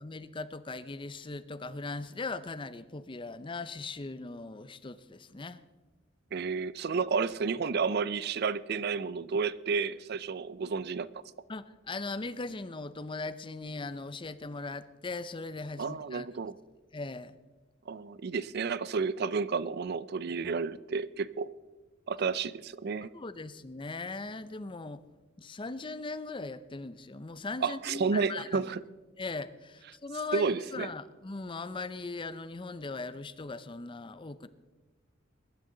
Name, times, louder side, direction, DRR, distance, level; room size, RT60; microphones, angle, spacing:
voice 1, 0.0-5.6 11.5-16.3 16.9-17.4 23.1-25.0 25.4-28.7 29.2-34.5, left 3 dB, 25° left, 14 dB, 0.5 m, -39 dB
voice 2, 6.3-11.1 15.8-16.6 17.9-21.5 22.1-23.1 27.6-28.8 30.3-30.9, right 5 dB, 55° right, 18 dB, 0.4 m, -31 dB
21.5 x 11.5 x 3.9 m, 1.3 s
head